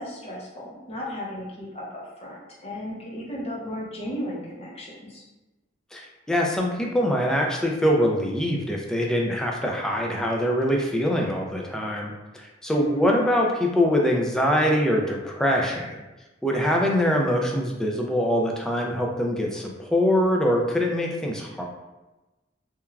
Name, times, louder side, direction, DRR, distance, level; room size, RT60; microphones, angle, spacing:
voice 1, 0.0-5.2 12.7-13.1, equal, 35° left, -4 dB, 0.7 m, -34 dB
voice 2, 5.9-16.0 16.4-21.6, equal, 5° left, -1 dB, 0.3 m, -23 dB
3.1 x 2.2 x 2.3 m, 1.1 s
head